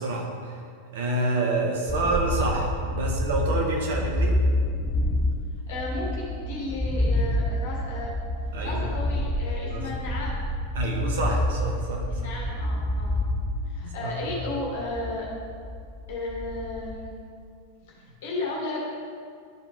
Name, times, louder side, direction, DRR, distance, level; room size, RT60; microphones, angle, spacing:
voice 1, 0.0-0.6 0.9-4.4 8.5-8.9 9.7-9.9 10.7-12.3 13.8-14.4, right 2 dB, 60° right, 0 dB, 1.5 m, -28 dB
sound 1, 1.9-17.1, left 1 dB, 5° left, 0.6 m, -28 dB
voice 2, 5.7-8.1 8.6-10.4 12.1-13.2 13.7-15.3 16.1-17.1 18.2-18.9, left 2 dB, 55° left, -3 dB, 1.8 m, -34 dB
12.5 x 4.8 x 3.6 m, 2.2 s
figure-of-eight pair, 90°, 0 cm